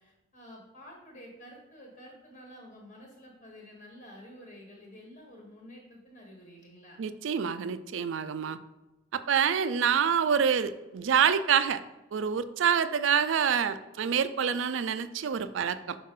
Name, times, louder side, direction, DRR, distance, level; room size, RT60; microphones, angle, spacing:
voice 1, 0.0-7.0, equal, 40° left, -1 dB, 1.3 m, -50 dB
voice 2, 7.0-8.6 9.1-11.8 12.1-16.0, right 7 dB, 70° right, 12 dB, 0.4 m, -27 dB
5.5 x 5.5 x 3.7 m, 1.1 s
head